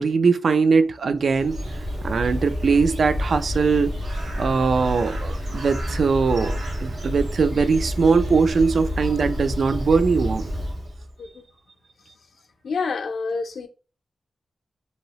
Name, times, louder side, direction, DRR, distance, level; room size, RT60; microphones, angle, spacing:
voice 1, 0.0-1.6 2.0-3.9 4.4-10.4, right 5 dB, 65° right, 0.3 m, -21 dB
Bird, 1.1-11.1, equal, 90° right, 1.2 m, -29 dB
voice 2, 12.6-13.7, left 4 dB, 80° left, 0.5 m, -28 dB
2.9 x 2.7 x 2.9 m
wide cardioid pair, 115°, 0 cm